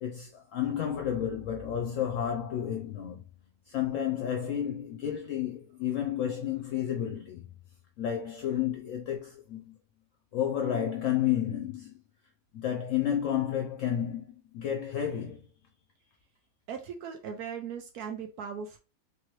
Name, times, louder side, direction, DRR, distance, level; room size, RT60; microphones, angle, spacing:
voice 1, 0.0-3.2 3.7-7.4 8.0-9.8 10.3-11.9 12.5-15.5, left 10 dB, 65° left, 0.9 m, -31 dB
voice 2, 16.7-18.8, right 7 dB, 85° right, 1.2 m, -38 dB
3.2 x 2.9 x 3.1 m
omnidirectional pair, 1.6 m